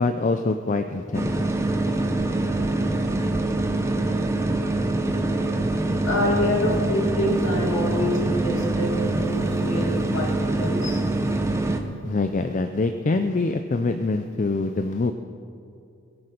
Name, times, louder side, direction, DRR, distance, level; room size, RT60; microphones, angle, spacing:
voice 1, 0.0-1.3 12.0-15.1, left 3 dB, 35° left, 8 dB, 0.4 m, -24 dB
sound 1, 1.1-11.8, right 2 dB, 10° right, 0.7 m, -24 dB
voice 2, 6.0-11.0, left 1 dB, 55° left, 0 dB, 2.5 m, -26 dB
21.0 x 8.8 x 5.0 m, 2.6 s
head